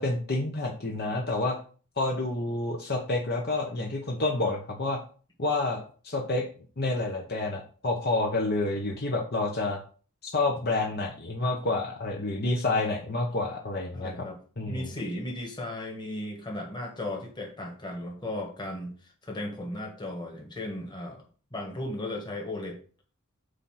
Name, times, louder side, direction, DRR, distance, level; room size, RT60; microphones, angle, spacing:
voice 1, 0.0-1.6 2.0-5.0 5.4-6.4 6.8-9.8 10.2-14.1 14.6-14.9, left 2 dB, 50° left, 0 dB, 1.0 m, -29 dB
voice 2, 13.9-14.4 14.7-18.9 19.2-21.3 21.5-22.8, left 1 dB, 20° left, 1 dB, 1.6 m, -36 dB
8.2 x 2.8 x 5.8 m, 0.39 s
head